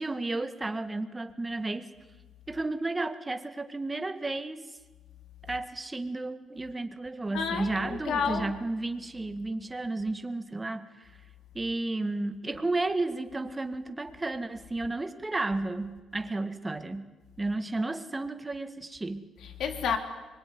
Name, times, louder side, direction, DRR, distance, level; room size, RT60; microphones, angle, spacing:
voice 1, 0.0-1.9 2.5-4.7 5.4-11.1 11.5-17.1 17.4-19.3, right 2 dB, 20° right, 2.0 m, -32 dB
voice 2, 7.3-8.6 19.4-20.0, left 6 dB, 75° left, 3.5 m, -30 dB
23.5 x 22.0 x 9.7 m
cardioid pair, 90°, 0 cm